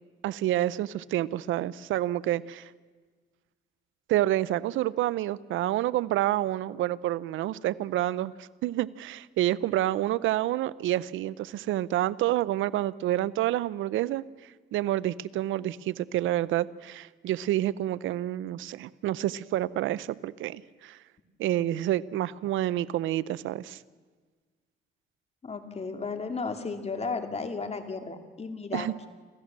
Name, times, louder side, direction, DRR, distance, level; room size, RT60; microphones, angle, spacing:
voice 1, 0.2-2.7 4.1-21.0 21.4-23.8 28.7-28.9, right 14 dB, 80° right, 19 dB, 0.6 m, -28 dB
voice 2, 25.4-29.1, left 4 dB, 30° left, 7 dB, 2.4 m, -34 dB
27.0 x 15.0 x 7.4 m, 1.5 s
cardioid pair, 90°, 20 cm